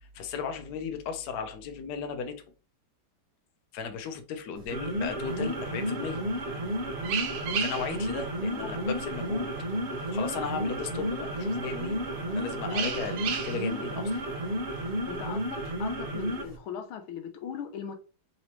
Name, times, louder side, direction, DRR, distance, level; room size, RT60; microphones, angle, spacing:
voice 1, 0.0-2.4 3.7-6.2 7.6-9.5 10.1-12.0 12.3-14.2, left 6 dB, 65° left, 1.0 m, -35 dB
sound 1, 4.6-16.6, equal, 40° right, 0.8 m, -32 dB
sound 2, 5.3-16.2, right 7 dB, 70° right, 1.0 m, -39 dB
voice 2, 15.1-18.0, left 8 dB, 85° left, 1.5 m, -39 dB
4.0 x 3.1 x 2.9 m
omnidirectional pair, 2.3 m